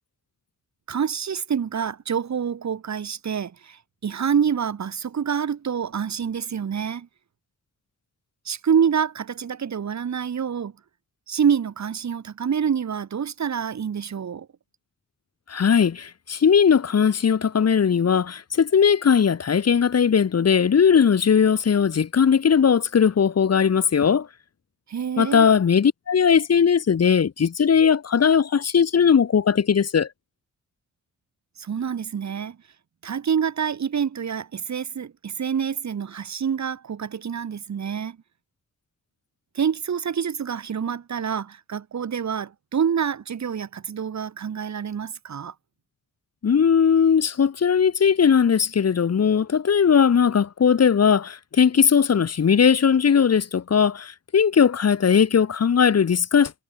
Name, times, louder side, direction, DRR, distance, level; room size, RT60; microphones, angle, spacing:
voice 1, 0.9-7.1 8.5-10.7 11.3-14.5 24.9-25.5 31.6-32.6 33.0-38.2 39.5-45.5, right 7 dB, 65° right, 2.2 m, -27 dB
voice 2, 15.5-24.3 25.2-30.1 46.4-56.5, left 7 dB, 55° left, 1.6 m, -19 dB
wide cardioid pair, 120°, 30 cm